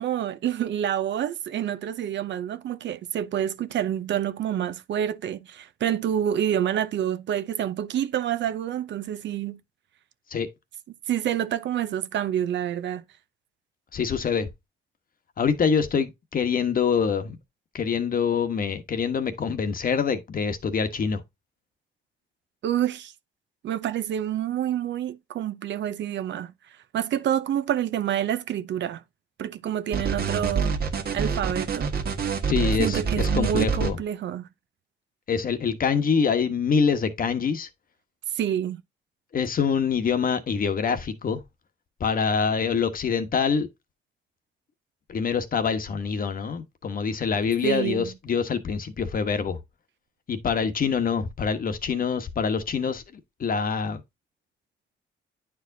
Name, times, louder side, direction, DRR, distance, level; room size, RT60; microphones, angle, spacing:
voice 1, 0.0-9.6 11.1-13.0 22.6-23.1 23.6-26.5 26.9-29.0 29.4-30.8 31.1-31.9 32.8-34.5 38.3-38.8 47.6-48.1, right 10 dB, 65° right, 0.7 m, -28 dB
voice 2, 13.9-14.5 15.4-17.4 17.7-21.2 32.5-34.0 35.3-37.7 39.3-41.4 42.0-43.7 45.1-49.6 50.3-53.0 53.4-54.0, left 6 dB, 45° left, 1.1 m, -25 dB
sound 1, 29.9-33.9, right 5 dB, 50° right, 1.4 m, -26 dB
9.4 x 4.6 x 2.6 m
cardioid pair, 90°, 20 cm